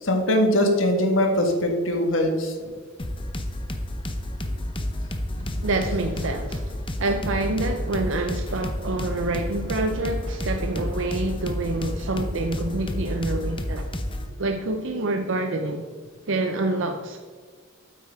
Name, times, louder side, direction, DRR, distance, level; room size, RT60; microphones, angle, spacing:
voice 1, 0.0-2.7 5.3-5.6, left 1 dB, 70° left, 1.6 m, -22 dB
sound 1, 3.0-14.3, left 1 dB, 25° left, 0.8 m, -30 dB
voice 2, 5.6-13.9 14.4-15.9 16.3-17.2, right 2 dB, 65° right, 0.6 m, -27 dB
8.8 x 8.3 x 3.6 m
head